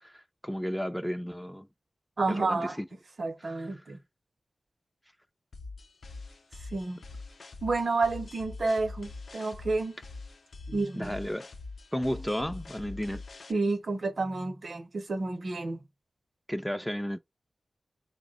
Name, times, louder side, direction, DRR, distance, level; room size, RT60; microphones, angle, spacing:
voice 1, 0.0-1.7 2.3-2.9 3.4-3.7 10.9-11.5 11.9-13.2 16.5-17.2, equal, ahead, 0.3 m, -33 dB
voice 2, 2.2-2.8 3.2-4.0 6.7-7.0 7.6-10.0 10.7-11.1 13.5-15.8, right 3 dB, 60° right, 0.6 m, -30 dB
sound 1, 5.5-13.5, left 3 dB, 70° left, 0.5 m, -44 dB
3.2 x 2.1 x 3.7 m
wide cardioid pair, 80°, 0 cm